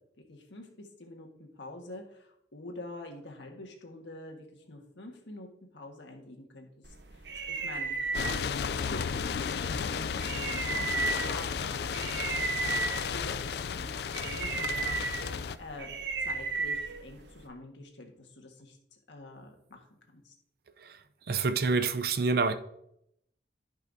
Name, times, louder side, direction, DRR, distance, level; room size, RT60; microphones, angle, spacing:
voice 1, 0.3-5.5 5.7-7.9 8.2-15.0 15.6-15.9 16.2-18.8 19.1-19.8 20.1-20.3, left 2 dB, 85° left, 1.5 m, -47 dB
sound 1, 6.8-17.5, right 4 dB, 70° right, 0.9 m, -35 dB
sound 2, 8.1-15.6, left 6 dB, 60° left, 0.3 m, -33 dB
voice 2, 21.3-22.5, right 4 dB, 55° right, 0.5 m, -26 dB
13.5 x 5.5 x 2.7 m
head